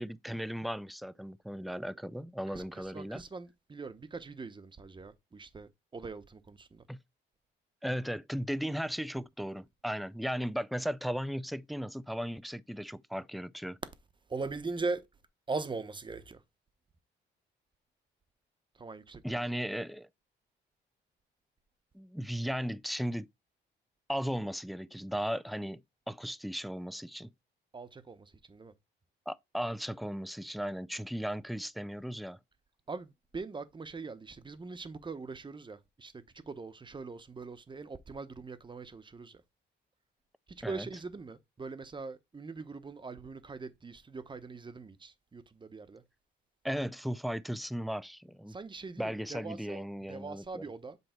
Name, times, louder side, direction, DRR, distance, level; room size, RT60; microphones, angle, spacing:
voice 1, 0.0-3.2 6.9-7.0 7.8-13.8 19.2-20.1 21.9-23.3 24.1-27.3 29.3-32.4 40.6-40.9 46.6-48.5 49.0-50.6, equal, ahead, 0.3 m, -36 dB
voice 2, 2.5-6.8 14.3-15.1 15.5-16.4 18.7-19.5 27.7-28.7 32.9-39.4 40.5-46.0 48.5-51.0, right 4 dB, 25° right, 0.9 m, -41 dB
8.0 x 3.1 x 4.4 m
cardioid pair, 90°, 20 cm